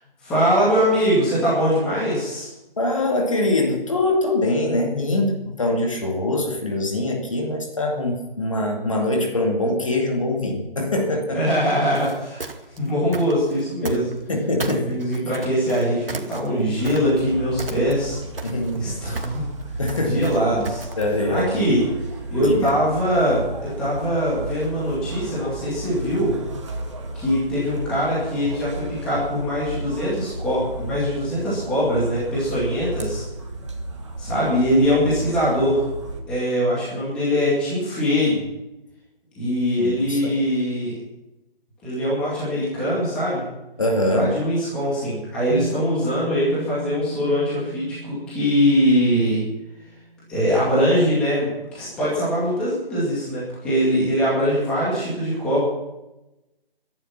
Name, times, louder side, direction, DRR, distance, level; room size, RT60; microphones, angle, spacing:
voice 1, 0.2-2.5 11.3-12.4 12.8-14.0 14.7-18.2 18.7-19.4 19.7-20.9 21.3-21.8 22.3-26.3 27.1-33.2 34.2-35.9 36.3-38.4 39.4-40.9 41.8-43.4 44.1-49.4 50.3-55.6, equal, 5° left, -9 dB, 2.2 m, -22 dB
voice 2, 2.8-11.4 13.8-14.0 14.3-15.0 18.4-18.8 19.1-19.2 19.8-20.3 21.0-21.5 22.4-22.7 39.8-40.4 43.8-44.3, left 1 dB, 35° left, 2 dB, 2.3 m, -23 dB
sound 1, 11.9-14.4 14.6-17.3 17.6-18.1 18.4-21.1, right 3 dB, 70° right, 2.3 m, -34 dB
sound 2, 16.8-36.2, right 2 dB, 30° right, 2.0 m, -34 dB
Bass guitar, 45.5-51.6, right 2 dB, 15° right, 1.0 m, -36 dB
21.5 x 11.0 x 5.9 m, 0.96 s
figure-of-eight pair, 175°, 30 cm